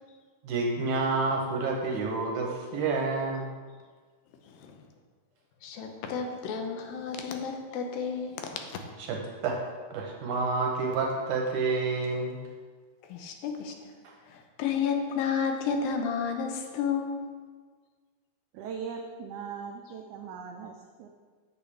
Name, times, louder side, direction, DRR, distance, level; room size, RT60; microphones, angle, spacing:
voice 1, 0.4-3.5 9.1-9.2 9.4-9.6 9.9-12.4, right 3 dB, 75° right, 0 dB, 2.0 m, -29 dB
voice 2, 5.6-8.8 13.1-13.9 14.3-17.2, left 6 dB, 90° left, 4 dB, 2.5 m, -31 dB
voice 3, 18.5-21.1, right 6 dB, 90° right, 3 dB, 1.7 m, -39 dB
8.4 x 7.1 x 3.3 m, 1.5 s
omnidirectional pair, 4.1 m